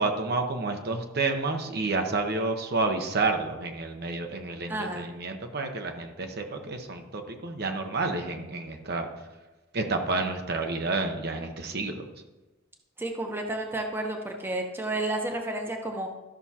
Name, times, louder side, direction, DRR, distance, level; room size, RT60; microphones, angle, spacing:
voice 1, 0.0-9.1 9.7-12.0, right 3 dB, 55° right, 5 dB, 0.8 m, -30 dB
voice 2, 4.7-5.0 13.0-16.1, right 2 dB, 10° right, 2 dB, 0.8 m, -31 dB
13.0 x 6.0 x 2.8 m, 1.1 s
head